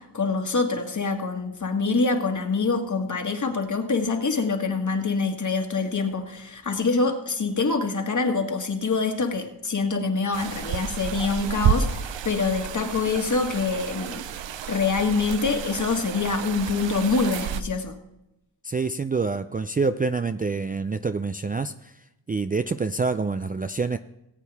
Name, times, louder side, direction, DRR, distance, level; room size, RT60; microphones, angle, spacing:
voice 1, 0.0-14.2 14.7-17.9, left 4 dB, 40° left, 5 dB, 1.7 m, -25 dB
sound 1, 10.3-17.6, right 8 dB, 90° right, 0.7 m, -30 dB
voice 2, 18.6-21.9 22.3-24.0, right 4 dB, 20° right, 10 dB, 0.3 m, -26 dB
18.5 x 8.4 x 3.5 m, 0.90 s
wide cardioid pair, 95°, 43 cm